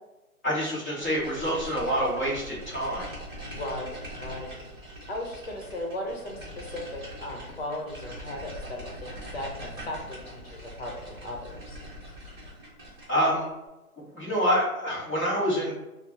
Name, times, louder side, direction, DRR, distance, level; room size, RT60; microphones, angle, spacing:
voice 1, 0.4-3.1 13.1-13.5 14.0-15.7, equal, 10° left, -12 dB, 0.9 m, -27 dB
sound 1, 1.0-13.4, equal, 15° right, 0.9 m, -42 dB
voice 2, 3.5-4.6 5.1-11.8, left 1 dB, 45° left, 1 dB, 0.9 m, -37 dB
3.9 x 2.1 x 3.0 m, 1.0 s
hypercardioid pair, 170°, 44 cm